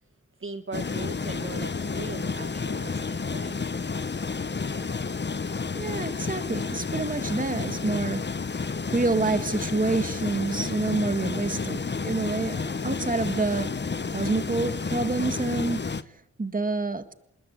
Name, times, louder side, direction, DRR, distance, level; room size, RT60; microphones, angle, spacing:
voice 1, 0.4-3.6, right 4 dB, 45° right, 8 dB, 1.7 m, -39 dB
sound 1, 0.7-16.0, left 4 dB, 35° left, 1.0 m, -31 dB
voice 2, 5.8-8.2 8.9-13.7 14.1-17.1, right 3 dB, 25° right, 10 dB, 1.9 m, -28 dB
27.0 x 20.5 x 9.5 m, 0.79 s
wide cardioid pair, 105°, 30 cm